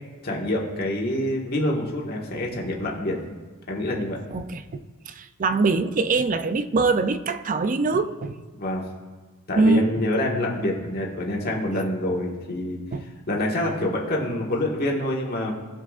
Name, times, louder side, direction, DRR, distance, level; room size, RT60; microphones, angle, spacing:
voice 1, 0.2-3.2 3.7-4.2 8.6-8.8 9.5-12.8 13.3-15.5, left 1 dB, 45° left, 1.6 m, -26 dB
voice 2, 4.3-8.4 9.6-9.9 12.9-13.0, right 3 dB, 35° right, 0.4 m, -23 dB
16.0 x 7.2 x 2.5 m
head